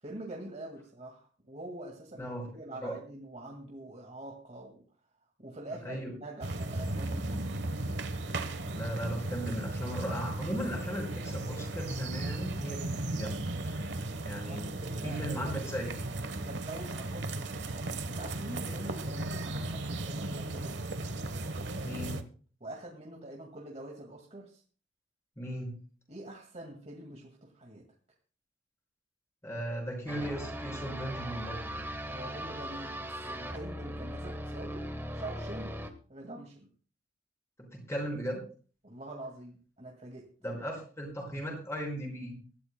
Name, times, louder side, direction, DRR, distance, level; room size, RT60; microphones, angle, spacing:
voice 1, 0.0-4.8 5.4-7.3 14.5-15.7 16.4-20.7 22.6-24.6 26.1-27.9 32.0-34.9 35.1-35.8 36.1-36.7 38.8-40.3, right 1 dB, 40° right, 0 dB, 2.0 m, -45 dB
voice 2, 2.2-2.5 2.8-3.0 5.8-6.1 8.7-14.0 14.2-14.8 15.0-15.9 18.7-18.8 21.8-22.2 25.4-25.7 29.4-31.7 37.6-38.4 40.4-42.4, equal, 15° left, 0 dB, 5.7 m, -37 dB
sound 1, 6.4-22.2, right 2 dB, 75° right, 1.1 m, -36 dB
sound 2, 30.1-35.9, equal, 15° right, 1.2 m, -39 dB
23.0 x 12.5 x 2.2 m, 0.40 s
head